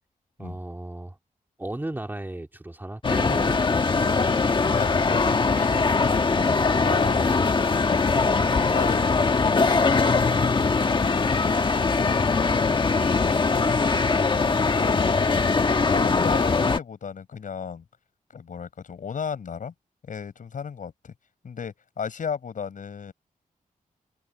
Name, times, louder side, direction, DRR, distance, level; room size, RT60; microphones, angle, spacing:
voice 1, 0.4-1.2 1.6-4.1 6.8-7.5 13.9-14.7, right 1 dB, 15° right, 2.3 m, -35 dB
sound 1, 3.0-16.8, left 4 dB, 35° left, 1.4 m, -21 dB
voice 2, 4.7-6.2 6.6-7.3 7.9-10.5 12.8-13.7 14.7-17.8 18.3-19.7 20.0-21.1 21.4-23.1, left 6 dB, 65° left, 7.6 m, -34 dB
wide cardioid pair, 130°, 14 cm